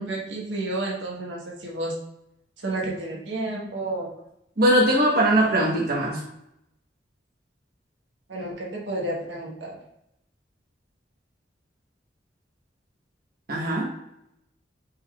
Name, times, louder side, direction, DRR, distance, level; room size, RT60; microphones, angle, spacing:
voice 1, 0.0-2.0 2.6-4.1 8.3-9.8, right 2 dB, 90° right, -2 dB, 1.2 m, -31 dB
voice 2, 4.6-6.2 13.5-13.9, right 1 dB, 55° right, -3 dB, 1.0 m, -20 dB
5.2 x 3.6 x 2.3 m, 0.80 s
head